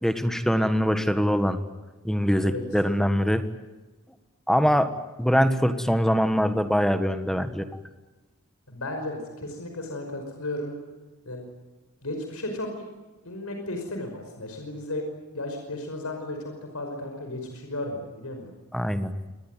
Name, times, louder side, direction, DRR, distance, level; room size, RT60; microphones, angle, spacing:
voice 1, 0.0-1.6 2.0-3.4 4.5-4.9 5.2-7.7 18.7-19.1, equal, ahead, 9 dB, 1.6 m, -23 dB
voice 2, 8.7-10.8 11.3-11.4 12.0-12.9 13.2-15.0 15.3-18.5, left 1 dB, 75° left, 3 dB, 5.5 m, -34 dB
26.0 x 20.0 x 9.2 m, 1.2 s
head